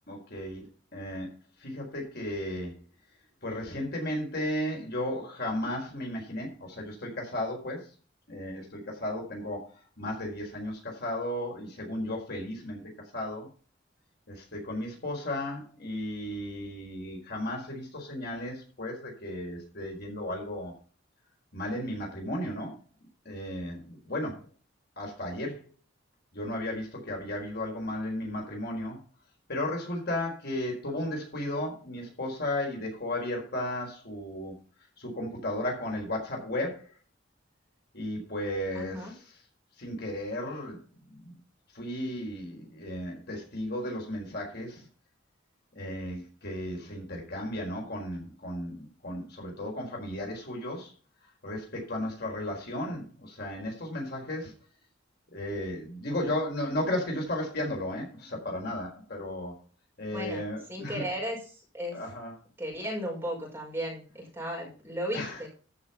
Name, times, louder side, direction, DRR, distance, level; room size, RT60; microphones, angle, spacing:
voice 1, 0.1-0.7 0.9-1.3 1.6-2.7 3.4-7.9 8.3-9.7 10.0-13.5 14.3-20.7 21.5-22.8 23.2-24.4 25.0-25.6 26.3-29.0 29.5-34.6 35.0-36.8 37.9-39.2 39.8-40.8 41.1-41.4 41.7-44.8 45.7-50.9 51.4-54.5 55.3-59.6 60.0-61.0 61.9-62.3 65.1-65.4, left 1 dB, 55° left, 0 dB, 4.6 m, -34 dB
voice 2, 38.7-39.1 60.1-62.0 62.6-65.5, equal, 10° right, -3 dB, 5.4 m, -35 dB
14.0 x 6.5 x 5.7 m, 0.38 s
head